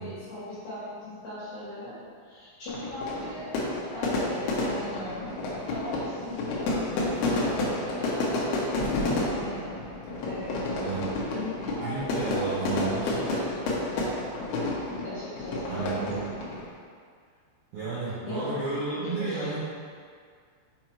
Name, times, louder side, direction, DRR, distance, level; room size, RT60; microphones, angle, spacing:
voice 1, 0.0-2.0 2.2-3.4 3.9-5.3 5.6-9.7 10.2-10.9 11.3-13.8 15.0-16.0 18.3-18.6 18.9-19.6, left 1 dB, 55° left, -12 dB, 2.7 m, -38 dB
Fire / Fireworks, 2.7-16.7, left 2 dB, 80° left, 2.3 m, -30 dB
voice 2, 10.8-11.1 11.8-13.2 15.7-16.3 17.7-19.6, right 4 dB, 65° right, -13 dB, 2.3 m, -32 dB
7.2 x 5.5 x 3.0 m, 2.1 s
omnidirectional pair, 6.0 m